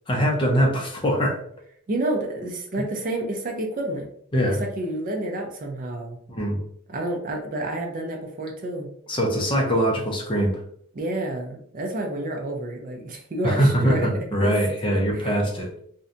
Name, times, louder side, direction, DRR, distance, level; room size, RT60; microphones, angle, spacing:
voice 1, 0.1-1.4 4.3-4.6 6.3-6.6 9.1-10.6 13.4-15.7, equal, 25° left, -1 dB, 0.5 m, -22 dB
voice 2, 1.9-4.1 4.5-6.2 6.9-8.9 10.9-14.5 14.9-15.4, right 1 dB, 40° right, 2 dB, 0.4 m, -29 dB
2.6 x 2.1 x 2.5 m, 0.64 s
head